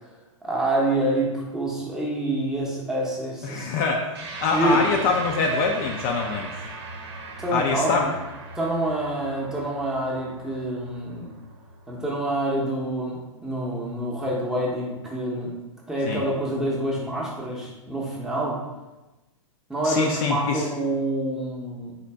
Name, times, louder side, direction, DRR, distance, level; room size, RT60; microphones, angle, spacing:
voice 1, 0.4-3.7 4.5-4.9 7.4-8.1 8.5-11.3 11.9-15.5 15.9-18.6 19.7-21.9, right 1 dB, 5° right, -4 dB, 0.7 m, -27 dB
voice 2, 3.4-4.1 4.4-6.7 7.5-8.1 16.1-16.2 19.8-20.7, left 4 dB, 40° left, 1 dB, 0.4 m, -24 dB
sound 1, 4.1-12.8, right 3 dB, 50° right, 0.7 m, -39 dB
3.9 x 2.5 x 3.3 m, 1.1 s
hypercardioid pair, 125°, 17 cm